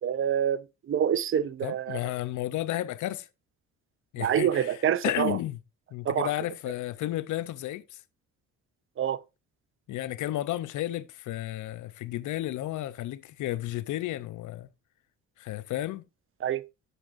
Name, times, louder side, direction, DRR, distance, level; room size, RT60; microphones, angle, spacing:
voice 1, 0.0-2.0 4.2-5.4 6.0-6.3 9.0-9.2 16.4-16.6, right 9 dB, 45° right, 0.5 m, -27 dB
voice 2, 1.6-3.3 4.1-4.7 5.0-5.6 5.9-8.0 9.9-14.7 15.4-16.0, left 14 dB, 75° left, 0.6 m, -32 dB
10.0 x 6.8 x 2.5 m
cardioid pair, 90°, 30 cm